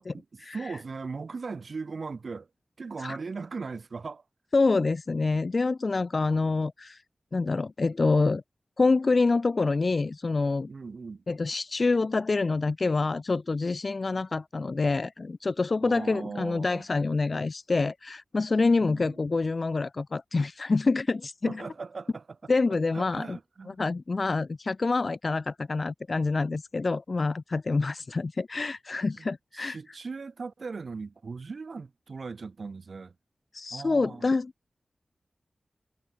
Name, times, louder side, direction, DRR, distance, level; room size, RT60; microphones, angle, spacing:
voice 1, 0.0-2.5 2.8-4.2 10.7-11.2 15.8-16.9 18.8-19.2 21.4-22.2 22.9-23.8 29.2-33.1 33.7-34.3, right 4 dB, 70° right, 5.8 m, -38 dB
voice 2, 4.5-7.0 7.3-8.4 8.8-10.7 11.3-21.6 22.5-23.4 23.7-29.8 33.5-34.5, left 3 dB, 55° left, 2.6 m, -26 dB
cardioid pair, 55°, 0 cm